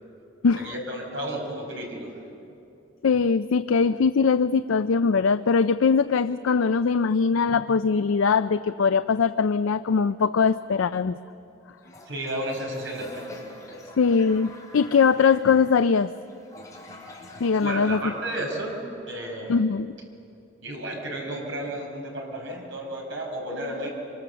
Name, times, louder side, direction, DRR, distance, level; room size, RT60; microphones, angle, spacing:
voice 1, 0.5-2.1 12.1-13.8 17.5-18.8 19.1-19.5 20.6-23.9, right 1 dB, 70° right, 0 dB, 5.5 m, -33 dB
voice 2, 3.0-11.2 14.0-16.1 17.4-18.0 19.5-19.9, left 5 dB, 85° left, 12 dB, 0.5 m, -21 dB
Toilet flush, 11.8-18.7, left 2 dB, 20° left, 4.1 m, -47 dB
25.0 x 24.0 x 6.9 m, 2.7 s
head